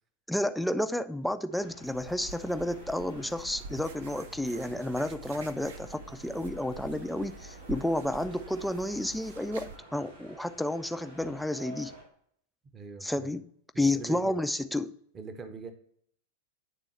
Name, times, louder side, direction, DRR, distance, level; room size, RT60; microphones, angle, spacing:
voice 1, 0.3-11.9 13.0-13.4 13.8-14.9, left 1 dB, ahead, 10 dB, 0.3 m, -31 dB
sound 1, 1.5-12.0, right 2 dB, 80° right, 2.5 m, -52 dB
sound 2, 1.8-9.8, right 3 dB, 60° right, 0.7 m, -46 dB
voice 2, 12.7-13.4 13.7-14.4 15.1-15.7, right 5 dB, 25° right, 8 dB, 0.8 m, -42 dB
9.2 x 3.7 x 4.1 m, 0.65 s
figure-of-eight pair, 90°, 0 cm